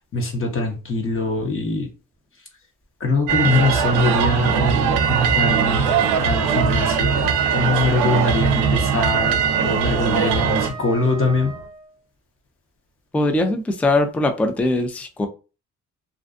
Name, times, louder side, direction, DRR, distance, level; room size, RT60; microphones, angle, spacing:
voice 1, 0.1-1.9 3.0-11.5, left 2 dB, 45° left, 0.9 m, -23 dB
sound 1, 3.3-10.7, right 7 dB, 85° right, 0.5 m, -20 dB
sound 2, 5.2-11.7, equal, 70° left, 1.2 m, -43 dB
Wind instrument woodwind instrument, 7.4-12.0, right 4 dB, 30° right, 0.7 m, -38 dB
voice 2, 13.1-15.3, left 2 dB, 5° left, 0.3 m, -21 dB
2.5 x 2.2 x 2.5 m
cardioid pair, 90°, 30 cm